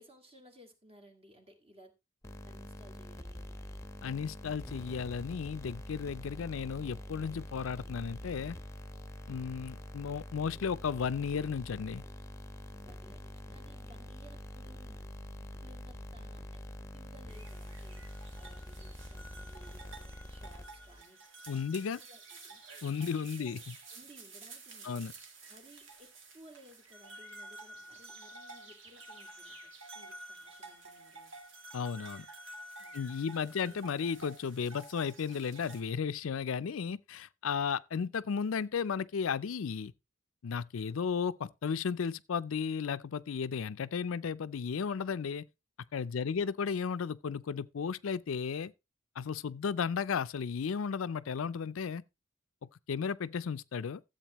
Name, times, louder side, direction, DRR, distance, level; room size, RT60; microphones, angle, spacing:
voice 1, 0.0-1.9 2.4-3.6 12.8-15.0 15.4-16.6 16.9-18.1 18.4-21.2 21.5-22.6 23.4-23.6 23.9-25.1 25.5-31.3 32.8-33.8 46.1-46.6, right 1 dB, 30° right, 2.0 m, -59 dB
sound 1, 2.2-21.0, left 1 dB, 15° left, 0.9 m, -45 dB
voice 2, 4.0-8.6 9.3-12.0 21.5-22.0 22.8-23.8 24.8-25.1 31.7-32.3 32.9-39.9 40.4-45.5 45.9-48.7 49.2-52.0 52.6-54.0, left 6 dB, 90° left, 0.5 m, -34 dB
sound 2, 17.3-35.8, right 2 dB, 70° right, 1.9 m, -51 dB
13.5 x 7.9 x 3.0 m
head